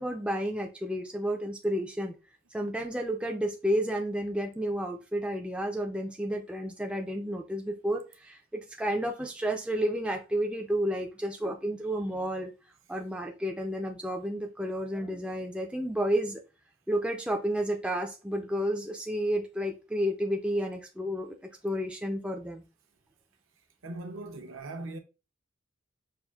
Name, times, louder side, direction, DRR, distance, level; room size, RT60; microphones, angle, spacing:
voice 1, 0.0-2.1 2.5-12.5 12.9-16.4 16.9-21.4 21.6-22.6, equal, 5° right, 0.3 m, -31 dB
voice 2, 23.8-25.0, right 2 dB, 60° right, 0.7 m, -39 dB
5.5 x 2.5 x 2.3 m
head